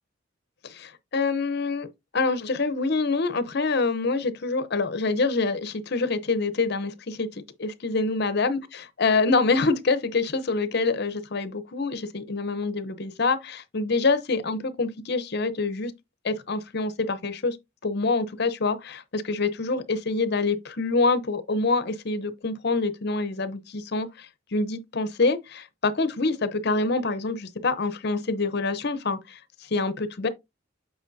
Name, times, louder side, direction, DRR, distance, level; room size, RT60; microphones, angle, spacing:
voice 1, 0.6-1.9 2.1-7.3 7.6-8.6 9.0-15.9 16.2-17.6 17.8-29.4 29.7-30.3, left 3 dB, 55° left, 0.7 m, -26 dB
8.0 x 4.5 x 2.6 m
head